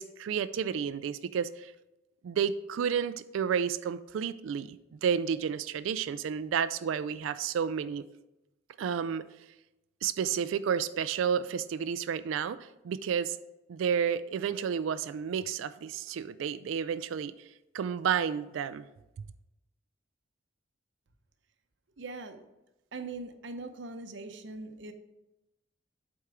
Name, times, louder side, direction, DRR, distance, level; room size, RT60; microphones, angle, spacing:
voice 1, 0.0-1.7 2.2-8.0 8.8-9.2 10.0-13.4 13.7-17.3 17.7-18.9, right 7 dB, 80° right, 14 dB, 0.3 m, -31 dB
voice 2, 22.0-22.4 22.9-24.9, right 3 dB, 65° right, 7 dB, 0.7 m, -41 dB
8.1 x 4.4 x 4.9 m, 0.96 s
head